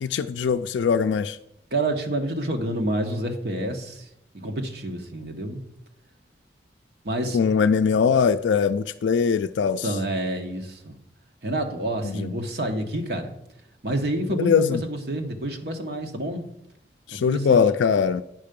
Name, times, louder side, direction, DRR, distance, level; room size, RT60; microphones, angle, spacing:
voice 1, 0.0-1.4 7.3-9.8 12.1-12.3 14.4-14.8 17.1-18.2, left 6 dB, 85° left, 9 dB, 0.3 m, -21 dB
voice 2, 1.7-4.1 4.3-5.6 7.0-7.4 9.8-11.0 11.4-13.3 13.8-16.5 17.1-17.7, right 1 dB, 60° right, 4 dB, 1.1 m, -28 dB
9.2 x 5.6 x 5.2 m, 0.80 s
head